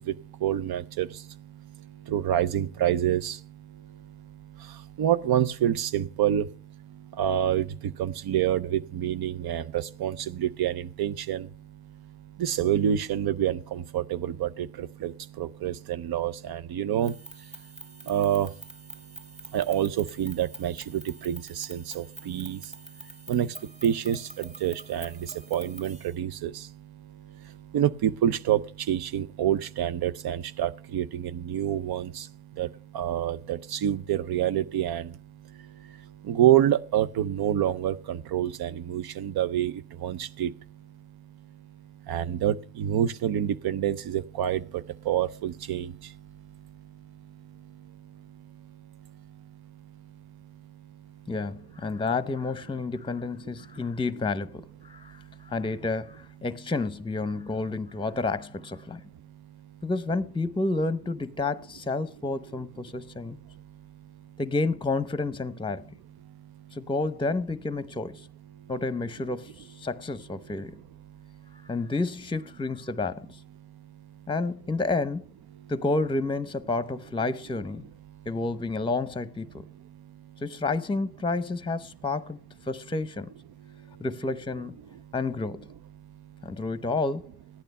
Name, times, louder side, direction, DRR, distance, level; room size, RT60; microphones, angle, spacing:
voice 1, 0.4-1.1 2.1-3.4 5.0-6.5 7.2-11.5 12.4-15.1 15.4-17.1 18.1-18.5 19.5-22.6 23.3-23.5 23.8-25.1 25.5-26.5 27.7-28.6 28.9-32.2 32.6-32.7 32.9-35.1 36.3-39.7 40.0-40.5 42.1-44.6 45.1-45.9, right 10 dB, 85° right, 0.6 m, -27 dB
sound 1, 17.0-26.2, right 1 dB, 20° right, 1.7 m, -46 dB
voice 2, 51.3-59.0 59.8-63.4 64.4-65.8 66.7-68.3 68.7-70.8 71.6-73.3 74.3-75.2 75.7-77.8 78.3-79.7 80.4-82.4 82.7-83.3 84.0-84.8 85.1-85.7 86.4-87.3, left 3 dB, 15° left, 0.7 m, -30 dB
13.0 x 9.1 x 5.4 m
cardioid pair, 65°, 36 cm